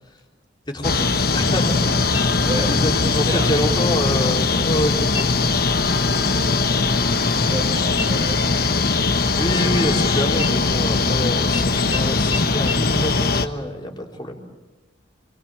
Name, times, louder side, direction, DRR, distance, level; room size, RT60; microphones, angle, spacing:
voice 1, 0.7-2.1 2.6-5.6 9.3-14.4, equal, 25° left, 1 dB, 3.7 m, -27 dB
sound 1, 0.8-13.5, left 3 dB, 50° left, 1.2 m, -20 dB
voice 2, 2.4-3.6 6.5-8.6, right 1 dB, 25° right, 2 dB, 1.8 m, -32 dB
Market scanner beep, 5.1-5.6 6.0-6.2 6.5-7.6 8.0-10.0 10.3-11.1 11.5-11.6 11.9-12.0 12.3-12.4 12.7-12.8, left 4 dB, 85° left, 2.4 m, -34 dB
28.0 x 23.5 x 7.5 m, 1.2 s
head